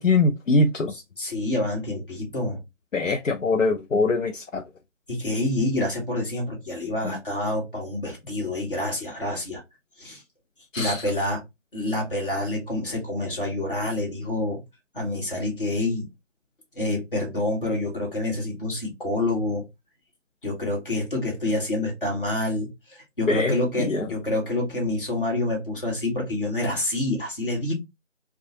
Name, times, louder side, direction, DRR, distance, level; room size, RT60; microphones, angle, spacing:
voice 1, 0.0-0.9 2.9-4.6 7.0-7.2 10.7-11.0 23.3-24.1, left 3 dB, 85° left, 0.6 m, -23 dB
voice 2, 0.9-2.6 5.1-9.6 10.0-10.2 10.8-11.4 11.7-14.6 14.9-16.1 16.7-19.6 20.4-27.7, left 1 dB, 45° left, 1.6 m, -27 dB
3.5 x 2.3 x 2.8 m
figure-of-eight pair, 165°, 37 cm